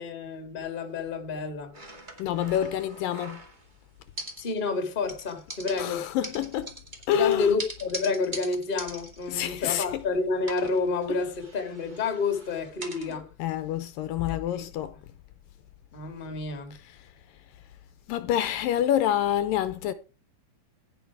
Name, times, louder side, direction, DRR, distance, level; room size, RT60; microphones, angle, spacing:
voice 1, 0.0-1.8 4.4-6.0 7.1-13.3 14.3-14.6 15.9-16.8, left 4 dB, 20° left, 1.4 m, -29 dB
sound 1, 1.7-3.8 4.2-4.8 5.1-10.1 10.4-13.1, right 1 dB, 20° right, 1.3 m, -42 dB
voice 2, 2.2-3.4 5.8-6.7 7.1-7.6 9.3-10.1 11.1-11.2 13.1-15.0 16.8-17.0 18.1-19.9, left 11 dB, 80° left, 2.3 m, -27 dB
16.0 x 6.0 x 4.7 m
omnidirectional pair, 4.2 m